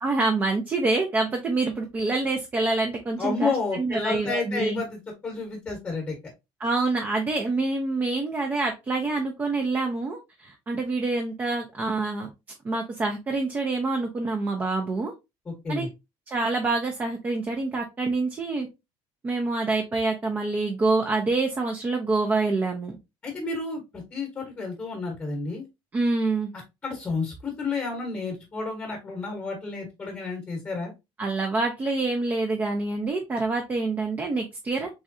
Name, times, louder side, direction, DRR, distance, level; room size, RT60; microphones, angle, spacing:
voice 1, 0.0-4.8 6.6-12.3 12.6-15.1 15.7-15.9 16.3-18.7 19.2-23.0 25.9-26.5 31.2-34.9, right 3 dB, 20° right, 2 dB, 0.5 m, -26 dB
voice 2, 3.2-6.1 15.4-15.9 23.2-25.6 26.8-30.9, left 4 dB, 15° left, 1 dB, 1.0 m, -31 dB
3.6 x 3.1 x 2.6 m, 0.23 s
cardioid pair, 180°, 10 cm